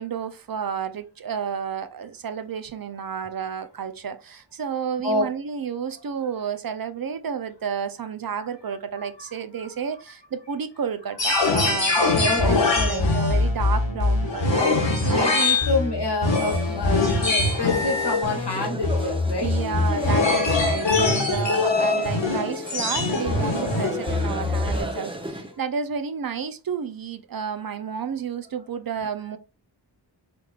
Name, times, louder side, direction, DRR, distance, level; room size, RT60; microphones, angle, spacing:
voice 1, 0.0-12.6 12.8-15.5 19.4-29.4, right 7 dB, 55° right, 0.5 m, -31 dB
voice 2, 8.6-9.8 11.3-11.5 12.2-13.1 14.3-14.4 15.1-19.5, left 2 dB, 65° left, 1.3 m, -28 dB
sound 1, 11.2-24.8, left 3 dB, 90° left, 1.0 m, -23 dB
sound 2, 16.4-25.6, right 1 dB, 10° right, 0.7 m, -35 dB
3.5 x 3.2 x 2.3 m
wide cardioid pair, 40°, 43 cm